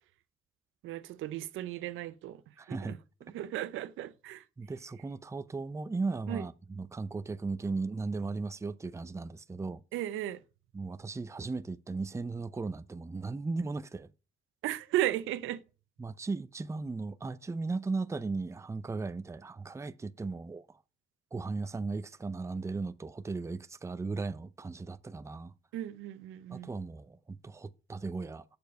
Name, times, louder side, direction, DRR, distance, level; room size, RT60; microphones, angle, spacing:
voice 1, 0.8-2.4 2.7-3.0 3.3-4.4 6.3-6.4 9.9-10.4 14.6-15.6 25.7-26.7, right 13 dB, 85° right, 0.6 m, -35 dB
voice 2, 2.6-3.0 4.6-9.8 10.7-14.1 16.0-20.8 21.3-25.5 26.5-28.4, right 3 dB, 15° right, 0.5 m, -36 dB
6.8 x 6.8 x 5.2 m
cardioid pair, 90°, 20 cm